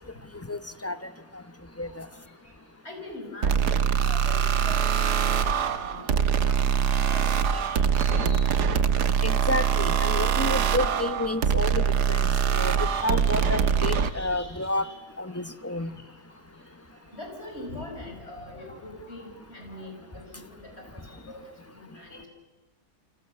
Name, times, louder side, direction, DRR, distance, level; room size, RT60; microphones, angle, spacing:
voice 1, 0.3-1.0 1.8-2.1 9.2-14.9 15.2-16.0, left 2 dB, 10° left, 12 dB, 0.8 m, -30 dB
voice 2, 2.8-8.5 12.8-14.9 17.1-21.4 21.7-22.3, left 1 dB, 40° left, 3 dB, 6.2 m, -43 dB
sound 1, 3.4-14.1, right 7 dB, 90° right, 1.7 m, -23 dB
28.5 x 25.5 x 7.1 m, 1.2 s
omnidirectional pair, 1.7 m